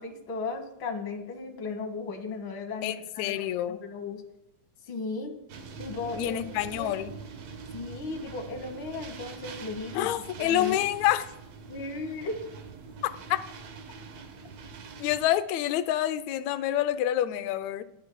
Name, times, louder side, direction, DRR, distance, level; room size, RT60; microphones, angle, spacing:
voice 1, 0.0-4.2 4.9-5.3 5.8-6.4 6.7-6.9 7.7-10.1 10.4-10.8 11.7-12.4, left 4 dB, 50° left, 4 dB, 1.6 m, -36 dB
voice 2, 2.8-3.8 6.2-7.1 9.9-11.3 13.3-13.4 15.0-17.8, left 12 dB, 75° left, 11 dB, 1.7 m, -27 dB
sound 1, 5.5-15.3, right 5 dB, 65° right, 2.1 m, -44 dB
22.5 x 8.2 x 2.2 m, 0.83 s
omnidirectional pair, 3.7 m